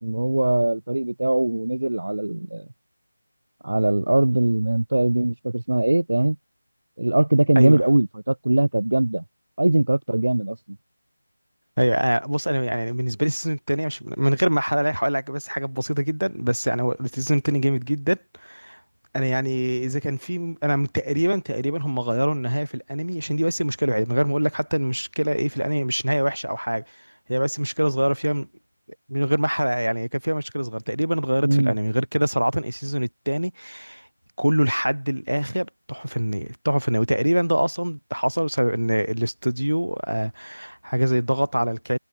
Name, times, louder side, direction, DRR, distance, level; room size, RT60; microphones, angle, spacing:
voice 1, 0.0-2.7 3.6-6.4 7.0-9.2 9.6-10.6 31.4-31.7, right 1 dB, 70° right, 1.5 m, -21 dB
voice 2, 11.8-18.8 19.1-28.5 29.1-34.1 34.4-42.0, right 1 dB, 90° right, 7.3 m, -24 dB
figure-of-eight pair, 165°, 0 cm